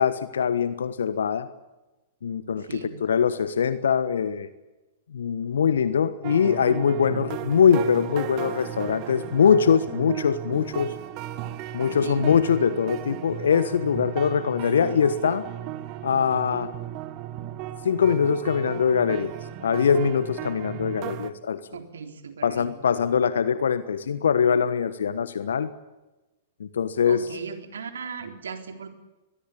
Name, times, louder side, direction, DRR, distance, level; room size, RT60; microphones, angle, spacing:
voice 1, 0.0-1.5 2.2-4.5 5.1-10.9 11.7-15.4 16.0-16.7 17.8-19.3 19.6-21.6 22.4-25.7 26.6-27.2, left 7 dB, 70° left, 14 dB, 1.3 m, -22 dB
voice 2, 2.5-3.0 11.9-12.3 21.7-22.7 27.0-28.9, right 5 dB, 70° right, 6 dB, 3.8 m, -37 dB
sound 1, 6.2-21.3, right 13 dB, 40° right, 1.8 m, -35 dB
23.0 x 22.0 x 8.6 m, 1.1 s
figure-of-eight pair, 105°, 0 cm